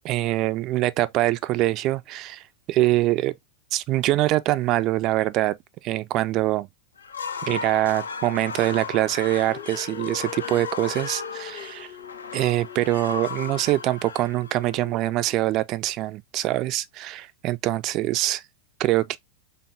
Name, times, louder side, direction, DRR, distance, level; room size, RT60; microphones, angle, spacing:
voice 1, 0.0-3.3 3.7-5.6 5.8-6.7 7.4-11.9 12.3-18.4 18.8-19.2, right 16 dB, 40° right, 0.3 m, -24 dB
sound 1, 7.0-15.1, left 5 dB, 70° left, 0.4 m, -36 dB
Dog, 9.2-15.6, left 11 dB, 50° left, 0.8 m, -42 dB
3.9 x 3.5 x 2.6 m
figure-of-eight pair, 90°, 0 cm